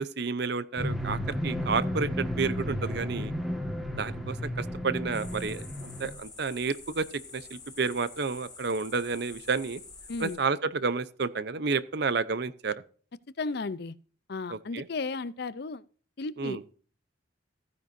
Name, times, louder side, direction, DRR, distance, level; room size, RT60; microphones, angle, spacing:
voice 1, 0.0-3.3 4.0-5.6 6.0-7.0 7.3-9.8 10.2-12.8 14.5-14.8 16.4-16.6, right 4 dB, 55° right, 0.7 m, -30 dB
sound 1, 0.8-6.1, equal, ahead, 1.5 m, -33 dB
sound 2, 5.1-10.4, left 4 dB, 20° left, 2.5 m, -48 dB
voice 2, 10.1-10.4 13.4-14.0 14.3-15.8 16.2-16.6, left 3 dB, 55° left, 0.5 m, -34 dB
15.0 x 9.6 x 2.6 m
head